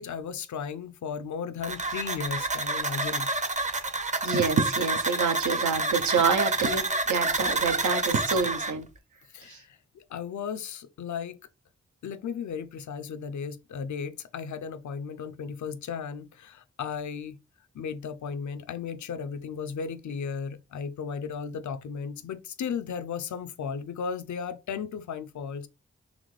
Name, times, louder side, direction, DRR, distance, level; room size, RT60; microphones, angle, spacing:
voice 1, 0.0-3.3 9.3-11.4 12.0-17.4 17.7-25.7, left 6 dB, 75° left, 0.6 m, -35 dB
sound 1, 1.6-8.7, right 3 dB, 25° right, 0.7 m, -28 dB
voice 2, 4.2-8.9 9.5-9.6, right 5 dB, 75° right, 0.9 m, -27 dB
4.1 x 2.9 x 3.2 m
cardioid pair, 45°, 30 cm